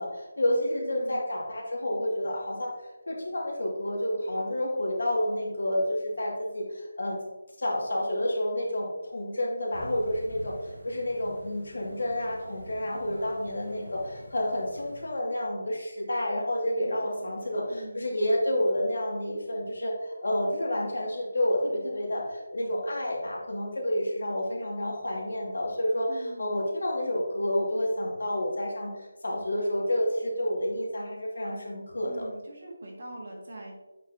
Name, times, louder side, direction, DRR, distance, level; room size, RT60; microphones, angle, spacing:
voice 1, 0.0-2.7 3.1-7.2 7.6-32.2, left 1 dB, 75° left, -2 dB, 2.2 m, -29 dB
voice 2, 0.7-1.2 16.8-18.1 26.1-26.4 32.0-33.8, right 2 dB, 50° right, -1 dB, 2.0 m, -44 dB
sound 1, 9.7-15.1, right 1 dB, 85° right, 1.9 m, -47 dB
8.2 x 5.8 x 2.8 m, 1.1 s
figure-of-eight pair, 175°, 0 cm